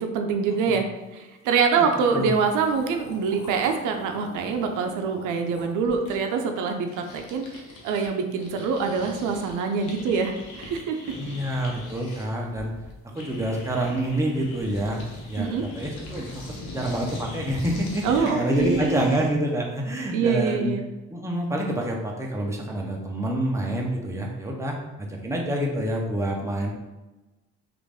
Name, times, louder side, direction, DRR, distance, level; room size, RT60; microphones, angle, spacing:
voice 1, 0.0-0.9 1.1-11.0 15.4-15.6 18.0-19.2 20.1-20.8, right 5 dB, 90° right, 5 dB, 0.5 m, -25 dB
sound 1, 1.6-1.7 1.9-8.1 8.3-19.4, left 2 dB, 75° left, 0.9 m, -41 dB
voice 2, 11.1-12.7 13.1-20.7 21.1-26.7, right 1 dB, 10° right, -1 dB, 0.6 m, -27 dB
3.1 x 2.5 x 3.4 m, 1.1 s
cardioid pair, 90°, 30 cm